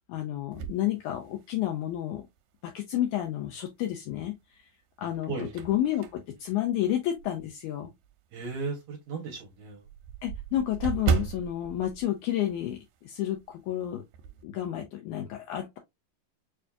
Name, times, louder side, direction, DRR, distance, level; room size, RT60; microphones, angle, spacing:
voice 1, 0.1-2.3 2.7-4.3 5.0-7.9 10.2-14.0 14.4-15.8, left 12 dB, 80° left, 1.8 m, -30 dB
sound 1, 0.5-1.8 2.4-2.5 3.9-4.5 4.9-7.6 8.0-8.2 8.5-8.6 8.9-9.0 9.2-13.0 13.3-13.5 13.8-14.4, right 7 dB, 85° right, 2.3 m, -35 dB
voice 2, 8.3-9.8, right 4 dB, 65° right, 2.1 m, -35 dB
6.5 x 2.7 x 2.3 m
omnidirectional pair, 4.0 m